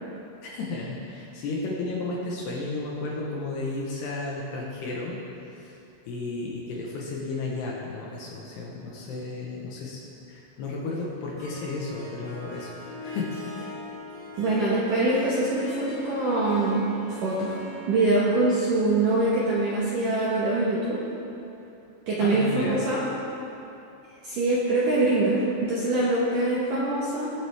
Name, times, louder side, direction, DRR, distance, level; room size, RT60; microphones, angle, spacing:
voice 1, 0.4-5.2 5.5-5.8 6.1-10.0 10.3-12.7 13.0-13.3 22.2-22.8, left 3 dB, 70° left, -3 dB, 2.8 m, -33 dB
Harp, 11.2-20.1, left 1 dB, 25° left, 1.2 m, -41 dB
voice 2, 14.4-17.5 17.9-21.0 22.1-23.0 24.2-27.3, right 2 dB, 65° right, -8 dB, 2.2 m, -24 dB
21.5 x 7.7 x 3.5 m, 2.8 s
omnidirectional pair, 5.7 m